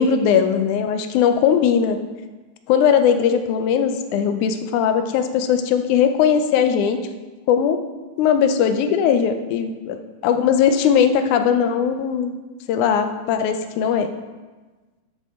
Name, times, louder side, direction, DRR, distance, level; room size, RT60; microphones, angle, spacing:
voice 1, 0.0-2.0 2.7-7.0 7.5-7.8 8.2-10.0 10.2-12.3 12.7-14.1, left 7 dB, 80° left, 7 dB, 2.1 m, -19 dB
9.8 x 8.1 x 3.6 m, 1.3 s
omnidirectional pair, 3.6 m